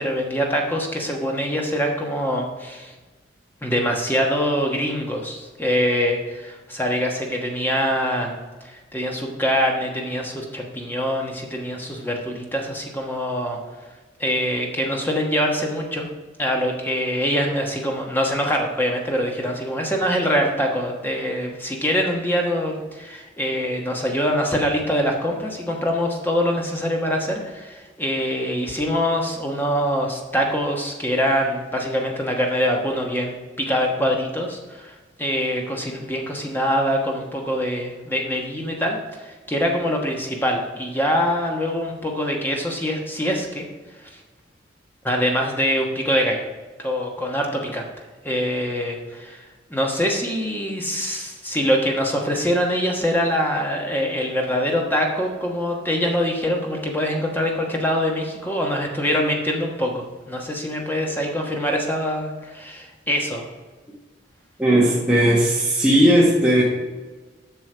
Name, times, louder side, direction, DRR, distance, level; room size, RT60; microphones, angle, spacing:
voice 1, 0.0-2.9 3.6-8.4 8.6-13.6 14.2-16.1 16.4-43.7 44.0-44.2 45.0-46.4 46.8-47.9 48.2-63.5, equal, 10° left, 0 dB, 1.2 m, -24 dB
voice 2, 64.6-66.6, right 1 dB, 5° right, -7 dB, 1.4 m, -17 dB
7.9 x 6.1 x 5.0 m, 1.3 s
head